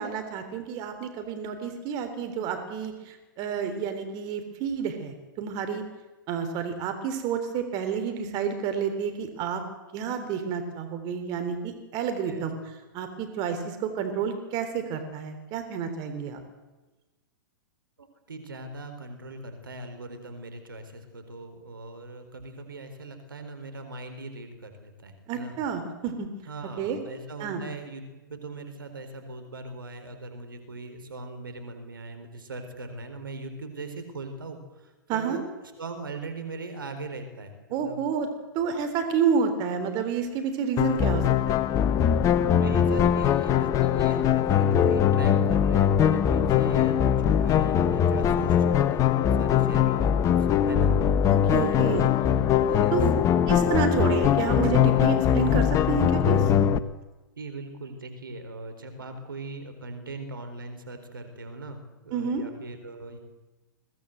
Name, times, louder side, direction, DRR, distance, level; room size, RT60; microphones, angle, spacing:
voice 1, 0.0-5.8 6.3-9.6 9.9-12.5 12.9-16.4 25.3-26.3 26.8-27.0 27.4-27.6 35.1-35.4 37.7-38.3 38.5-41.5 51.3-52.0 52.9-53.1 53.5-56.5 62.1-62.4, right 7 dB, 40° right, 7 dB, 3.6 m, -29 dB
voice 2, 18.0-25.6 26.5-35.4 35.8-37.5 37.8-38.0 42.5-51.0 51.5-52.2 52.7-53.1 57.4-63.2, right 2 dB, 80° right, 7 dB, 4.2 m, -40 dB
sound 1, 40.8-56.8, left 9 dB, 30° left, 1.0 m, -22 dB
22.5 x 18.0 x 8.0 m, 1.2 s
figure-of-eight pair, 110°, 11 cm